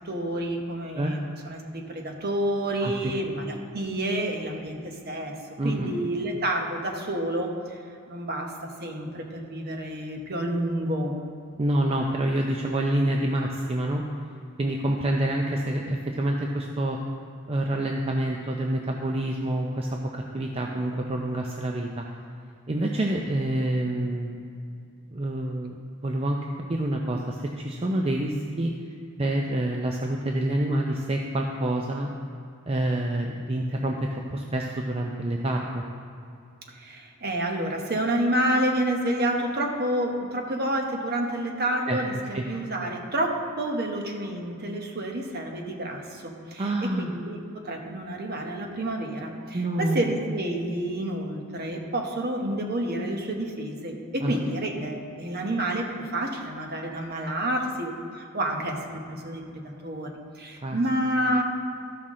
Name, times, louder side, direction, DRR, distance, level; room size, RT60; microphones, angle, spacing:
voice 1, 0.0-1.2 1.4-5.3 5.6-7.8 8.1-8.5 8.8-11.2 36.7-47.4 47.6-61.4, right 1 dB, 50° right, 2 dB, 1.1 m, -29 dB
voice 2, 2.8-3.1 5.6-5.9 11.6-14.0 14.6-17.0 17.5-22.0 22.7-24.3 25.1-26.4 26.7-28.7 29.2-32.1 32.7-35.8 41.9-42.0 42.3-42.4 46.6-47.1 49.5-50.1 54.2-54.3 60.6-60.8, right 1 dB, 30° right, 1 dB, 0.5 m, -27 dB
13.5 x 5.8 x 3.7 m, 2.5 s
head